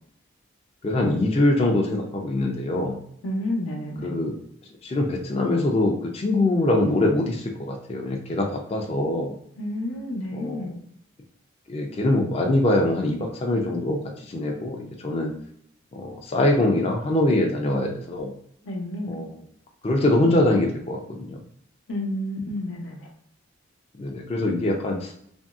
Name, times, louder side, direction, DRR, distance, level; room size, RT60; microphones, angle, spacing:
voice 1, 0.8-3.0 4.0-4.4 4.8-9.4 10.3-10.6 11.7-15.3 15.9-18.3 19.1-19.3 19.8-21.4 24.0-25.1, left 1 dB, 30° left, 1 dB, 0.3 m, -23 dB
voice 2, 3.2-4.1 9.6-10.7 18.6-19.2 21.9-23.1, left 1 dB, 85° left, 1 dB, 0.7 m, -30 dB
2.9 x 2.6 x 2.3 m, 0.70 s
head